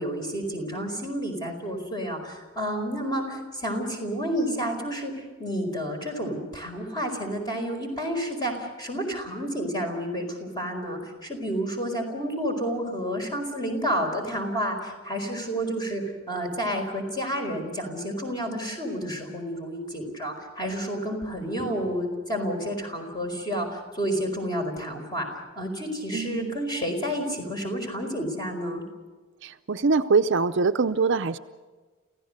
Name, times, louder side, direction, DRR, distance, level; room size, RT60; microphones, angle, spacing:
voice 1, 0.0-25.3 25.5-28.8, equal, 20° left, 3 dB, 4.7 m, -30 dB
voice 2, 26.1-26.6 29.4-31.4, right 4 dB, 55° right, 10 dB, 0.6 m, -23 dB
28.5 x 16.0 x 6.6 m, 1.4 s
head